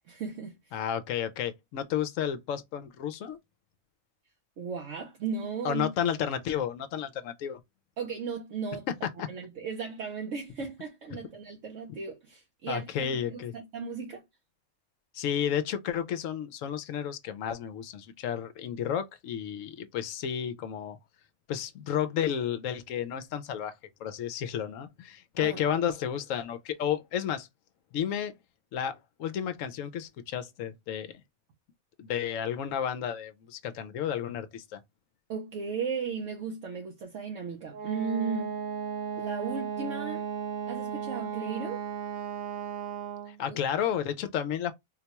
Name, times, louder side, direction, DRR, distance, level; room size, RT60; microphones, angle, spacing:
voice 1, 0.0-0.8 4.6-5.9 8.0-8.9 9.3-14.2 25.4-25.6 35.3-38.6 39.2-40.3 40.7-41.8 43.5-43.6, right 5 dB, 65° right, 1.0 m, -36 dB
voice 2, 0.7-3.4 5.6-7.6 9.2-9.3 12.7-13.5 15.1-21.0 21.5-23.7 24.0-27.5 27.9-28.3 28.7-31.2 32.0-34.8 43.3-44.7, left 9 dB, 70° left, 0.9 m, -32 dB
Wind instrument woodwind instrument, 37.7-43.4, right 7 dB, 85° right, 1.3 m, -35 dB
3.9 x 2.2 x 2.9 m
omnidirectional pair, 1.5 m